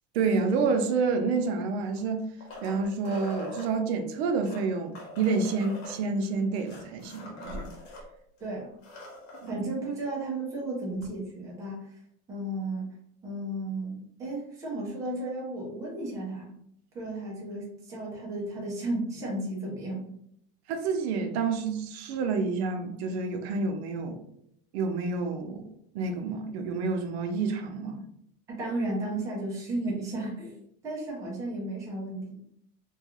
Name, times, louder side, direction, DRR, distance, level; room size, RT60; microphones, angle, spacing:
voice 1, 0.1-2.3 2.6-7.7 9.4-9.6 20.7-24.2 24.7-25.7 25.9-28.0, right 4 dB, 85° right, 6 dB, 0.5 m, -29 dB
sound 1, 1.8-3.7 4.3-8.0 8.4-8.5 8.7-9.5 11.0-11.1, left 2 dB, 80° left, 0.9 m, -42 dB
voice 2, 9.5-12.0 12.3-12.9 13.2-16.5 16.9-20.0 28.5-30.5 30.8-32.4, right 2 dB, 10° right, -4 dB, 0.4 m, -34 dB
2.3 x 2.2 x 2.9 m, 0.71 s
cardioid pair, 175°, 31 cm